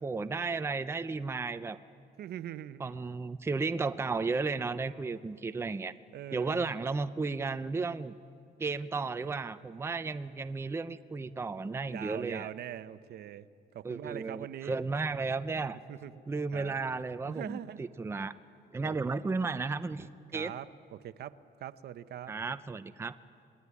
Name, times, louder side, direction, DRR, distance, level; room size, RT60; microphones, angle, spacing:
voice 1, 0.0-1.8 2.8-5.9 6.3-8.1 8.6-12.5 13.8-15.8 16.3-18.3 18.7-20.5 22.3-23.2, right 4 dB, 15° right, 11 dB, 0.6 m, -34 dB
voice 2, 2.2-3.0 6.1-6.7 11.9-13.5 13.7-14.7 15.9-16.1 16.5-16.8 17.2-17.8 18.8-19.0 20.3-22.3, right 11 dB, 65° right, 14 dB, 0.8 m, -42 dB
26.5 x 21.0 x 9.8 m, 2.4 s
cardioid pair, 150°, 18 cm